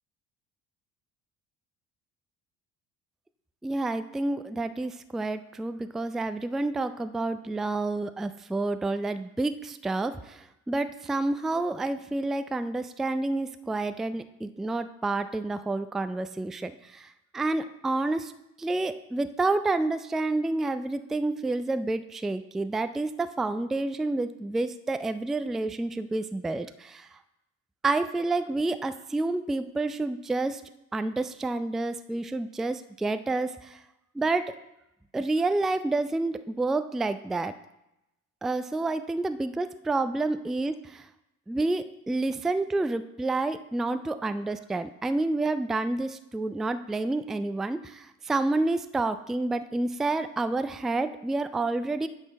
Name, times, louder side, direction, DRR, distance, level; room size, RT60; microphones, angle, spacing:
voice 1, 3.6-17.1 17.3-18.3 18.6-27.1 27.8-30.6 30.9-33.8 34.2-34.5 35.1-37.5 38.4-41.0 41.5-52.1, right 2 dB, ahead, 11 dB, 0.3 m, -29 dB
9.8 x 6.2 x 5.7 m, 0.88 s
figure-of-eight pair, 55°, 41 cm